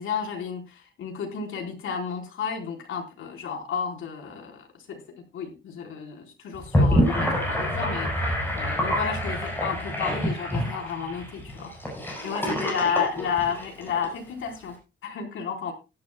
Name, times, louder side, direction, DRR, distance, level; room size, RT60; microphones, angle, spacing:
voice 1, 0.0-5.0 5.3-11.7 12.2-14.7 15.0-15.7, left 6 dB, 85° left, 3 dB, 4.2 m, -32 dB
Gurgling / Sink (filling or washing), 6.5-14.1, equal, 10° left, 7.6 m, -26 dB
18.5 x 12.0 x 2.2 m, 0.27 s
wide cardioid pair, 160°, 20 cm